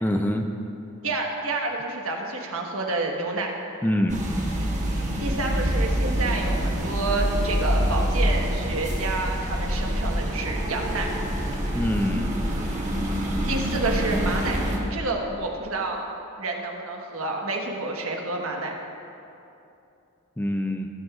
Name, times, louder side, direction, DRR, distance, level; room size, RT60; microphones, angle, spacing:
voice 1, 0.0-0.5 3.8-4.2 11.7-12.3 20.4-20.9, left 1 dB, 10° left, 5 dB, 0.4 m, -25 dB
voice 2, 1.0-3.5 5.2-11.1 13.5-14.6 14.9-16.1 16.4-18.7, right 2 dB, 75° right, 1 dB, 1.4 m, -29 dB
sound 1, 4.1-14.8, equal, 35° right, 1.3 m, -26 dB
20.0 x 9.0 x 2.5 m, 2.8 s
head